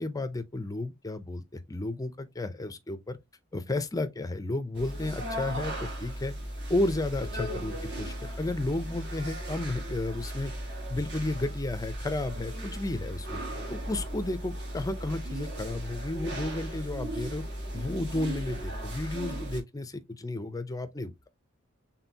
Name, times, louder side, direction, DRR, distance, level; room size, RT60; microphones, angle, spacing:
voice 1, 0.0-3.2 3.5-6.3 6.7-10.5 10.9-13.4 13.7-17.4 17.7-21.3, left 2 dB, 15° left, 0.5 m, -33 dB
sound 1, 4.7-19.6, right 1 dB, 50° right, 1.5 m, -36 dB
4.4 x 3.6 x 2.7 m
head